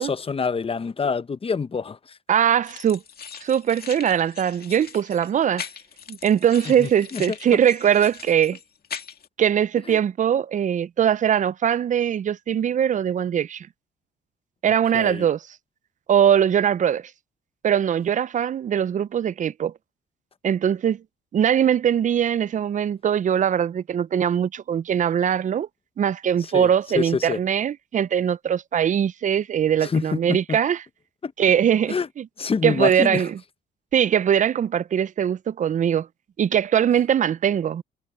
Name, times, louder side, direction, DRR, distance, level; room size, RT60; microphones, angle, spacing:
voice 1, 0.0-2.2 6.7-7.2 9.9-10.0 14.9-15.3 26.4-26.7 26.9-27.4 29.8-30.6 31.2-31.3 31.9-32.1 32.4-33.3, left 5 dB, 30° left, 0.8 m, -26 dB
voice 2, 2.3-3.0 3.4-5.7 6.1-8.6 9.4-13.7 14.6-15.4 16.1-17.1 17.6-19.7 20.4-21.0 21.3-25.7 26.0-30.8 31.4-32.3 32.6-33.4 33.9-36.1 36.4-37.8, right 9 dB, 40° right, 0.4 m, -21 dB
sound 1, 2.6-9.3, left 7 dB, 50° left, 2.3 m, -40 dB
cardioid pair, 90°, 20 cm